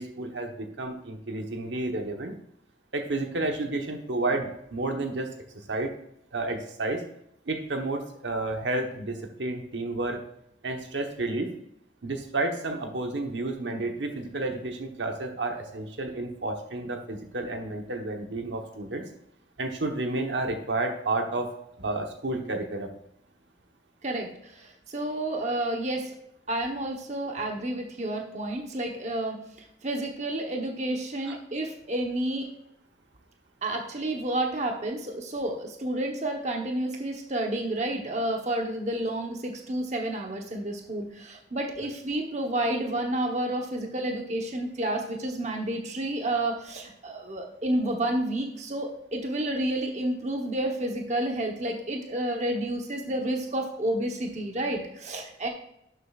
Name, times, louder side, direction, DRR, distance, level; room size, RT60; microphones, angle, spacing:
voice 1, 0.0-2.3 2.9-5.3 5.7-5.9 6.3-7.0 7.5-10.2 10.6-11.5 12.0-19.0 19.6-21.5 21.8-22.9 31.3-31.4, right 2 dB, 85° right, 4 dB, 1.2 m, -31 dB
voice 2, 24.0-26.1 26.5-29.4 29.8-32.5 33.6-55.5, right 1 dB, 40° right, 2 dB, 1.1 m, -30 dB
11.5 x 7.6 x 2.5 m, 0.76 s
head